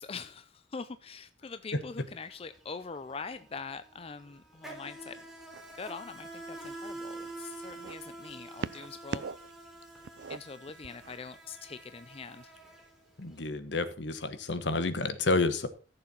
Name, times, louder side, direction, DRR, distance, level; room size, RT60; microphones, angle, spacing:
voice 1, 0.0-5.2 5.7-9.2 10.3-12.5, left 5 dB, 30° left, 12 dB, 0.5 m, -43 dB
Insect, 1.9-2.1 2.4-13.4, right 2 dB, ahead, 3.1 m, -47 dB
sound 1, 5.5-5.9 6.6-8.0 8.6-9.5 9.8-11.2 12.1-12.2, right 5 dB, 65° right, 0.4 m, -40 dB
voice 2, 13.2-15.7, left 3 dB, 70° left, 11 dB, 1.2 m, -30 dB
14.5 x 6.9 x 4.3 m, 0.35 s
head